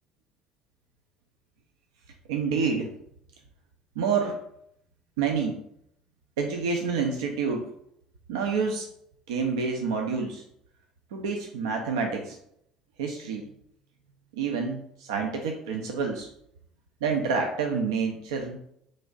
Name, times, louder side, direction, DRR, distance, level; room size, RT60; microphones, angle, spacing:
voice 1, 2.3-3.0 4.0-4.4 5.2-5.6 6.4-7.7 8.3-8.9 9.3-10.4 11.1-12.4 13.0-13.5 14.3-16.3 17.0-18.6, right 5 dB, 75° right, 2 dB, 0.4 m, -28 dB
3.1 x 2.5 x 3.8 m, 0.73 s
hypercardioid pair, 60°, 3 cm